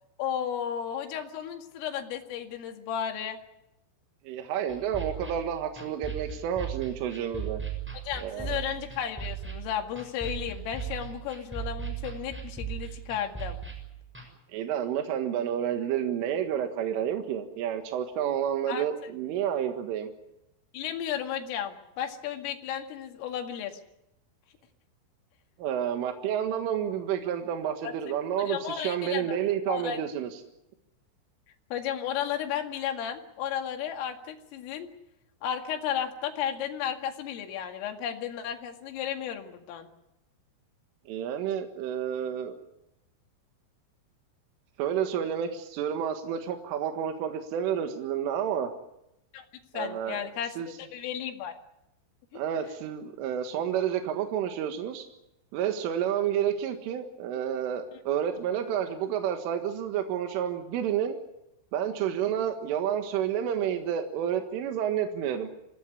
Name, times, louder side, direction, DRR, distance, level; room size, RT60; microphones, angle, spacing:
voice 1, 0.2-3.4 7.9-13.6 18.7-18.9 20.7-23.8 27.8-27.9 28.4-29.4 29.7-30.0 31.7-34.9 35.4-39.9 49.3-49.5 49.7-51.6 52.3-52.4, left 9 dB, 80° left, 4 dB, 4.7 m, -34 dB
voice 2, 4.3-7.6 8.2-8.6 14.5-20.1 25.6-30.3 41.1-42.5 44.8-48.7 49.7-50.2 50.6-50.7 52.3-55.1 55.5-61.2 61.7-65.5, right 9 dB, 80° right, 5 dB, 4.1 m, -30 dB
sound 1, 4.7-14.3, right 7 dB, ahead, 6.0 m, -38 dB
26.0 x 17.0 x 9.7 m, 0.87 s
omnidirectional pair, 5.8 m